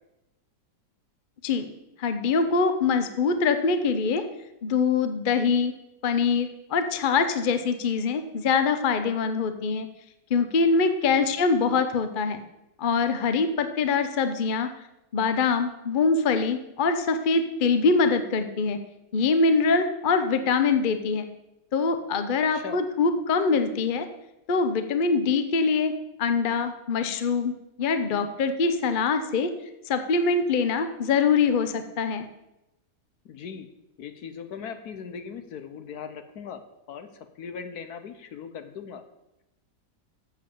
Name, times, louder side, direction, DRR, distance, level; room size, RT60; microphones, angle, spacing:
voice 1, 2.0-4.2 4.6-5.7 6.0-9.9 10.3-12.4 12.8-14.7 15.1-18.8 19.1-21.2 21.7-24.0 24.5-25.9 26.2-27.5 27.8-29.5 29.9-32.3, left 4 dB, 45° left, 8 dB, 0.6 m, -24 dB
voice 2, 33.2-33.7 34.0-37.1 37.4-39.0, left 6 dB, 65° left, 9 dB, 1.2 m, -39 dB
7.6 x 7.3 x 7.1 m, 0.92 s
omnidirectional pair, 1.9 m